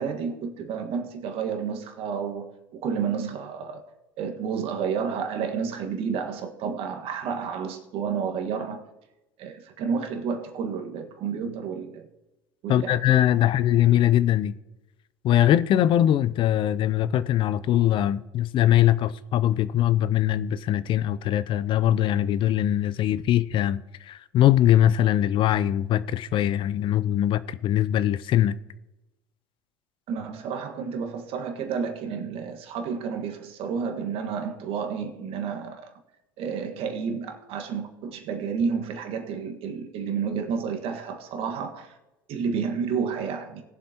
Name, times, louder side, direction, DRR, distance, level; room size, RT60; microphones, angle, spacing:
voice 1, 0.0-3.8 4.2-8.8 9.4-12.1 12.6-13.0 30.1-35.9 36.4-41.9 42.3-43.6, right 6 dB, 55° right, 1.6 m, -30 dB
voice 2, 12.7-14.5 15.2-28.5, left 12 dB, 45° left, 0.5 m, -22 dB
20.0 x 7.4 x 2.9 m
hypercardioid pair, 80°, 12 cm